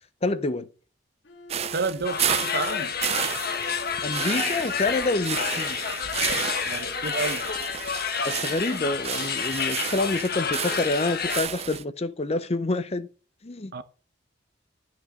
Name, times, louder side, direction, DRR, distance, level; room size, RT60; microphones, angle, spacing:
voice 1, 0.2-0.7 4.0-5.8 8.2-13.1 13.4-13.7, left 2 dB, 35° left, 0.7 m, -27 dB
Bowed string instrument, 1.2-5.6, left 3 dB, 85° left, 2.0 m, -45 dB
sound 1, 1.5-11.8, right 9 dB, 35° right, 0.4 m, -32 dB
voice 2, 1.7-2.9 6.6-7.5 13.7-13.8, right 4 dB, 60° right, 0.9 m, -30 dB
sound 2, 2.0-11.4, left 6 dB, 60° left, 1.3 m, -29 dB
10.5 x 5.2 x 6.3 m
head